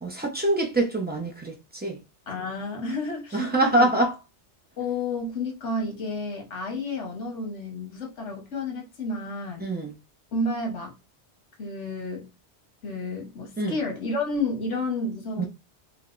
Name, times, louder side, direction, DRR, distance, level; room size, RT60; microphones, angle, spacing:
voice 1, 0.0-2.0 3.3-4.1 9.6-9.9 13.6-13.8 15.4-15.5, right 2 dB, 10° right, 0.5 m, -24 dB
voice 2, 2.3-3.9 4.8-9.7 10.3-11.0 11.6-12.3 12.8-15.5, left 2 dB, 85° left, 1.3 m, -31 dB
4.0 x 2.1 x 2.4 m
omnidirectional pair, 1.2 m